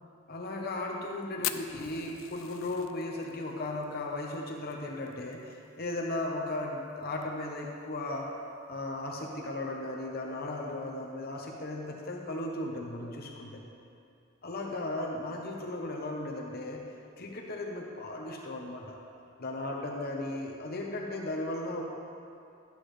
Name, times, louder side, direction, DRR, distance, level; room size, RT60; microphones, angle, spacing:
voice 1, 0.3-8.3 8.7-13.6 14.4-16.8 17.2-19.0 19.4-21.8, left 2 dB, 50° left, 0 dB, 1.0 m, -36 dB
Fire, 1.4-5.9 6.2-6.3 6.5-6.6 7.0-7.4 8.0-8.1 9.1-9.3, left 12 dB, 90° left, 0.4 m, -40 dB
12.0 x 8.3 x 3.3 m, 2.5 s
head